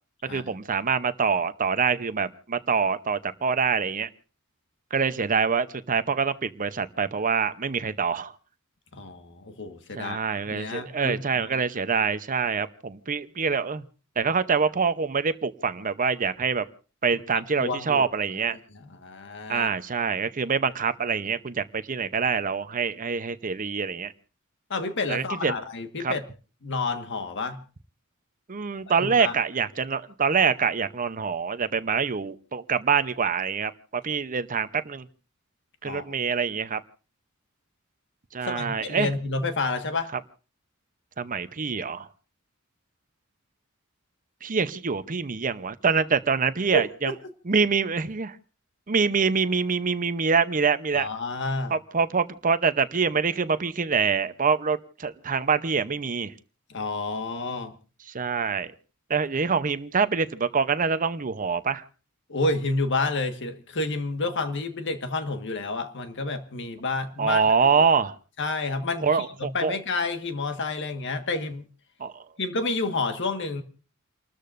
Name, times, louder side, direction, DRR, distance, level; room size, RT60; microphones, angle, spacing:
voice 1, 0.2-4.1 4.9-8.3 10.0-13.8 14.2-16.6 17.0-18.6 19.5-24.1 25.1-25.6 26.0-26.1 28.5-35.0 35.8-36.8 38.3-39.1 41.2-42.1 44.4-47.1 47.5-48.4 48.9-51.1 51.7-56.3 58.1-58.7 59.1-61.8 67.2-68.1 69.0-69.8 72.0-72.1, right 5 dB, 40° right, 12 dB, 0.8 m, -25 dB
voice 2, 8.9-11.5 17.1-17.2 17.6-18.1 19.0-19.7 24.7-26.2 26.6-27.6 29.0-29.3 35.8-36.0 38.4-40.1 46.7-47.1 50.9-51.7 56.7-57.7 62.3-67.4 68.4-69.1 69.4-71.6 72.4-73.6, left 3 dB, 60° left, 8 dB, 1.6 m, -29 dB
30.0 x 13.5 x 2.6 m, 0.37 s
head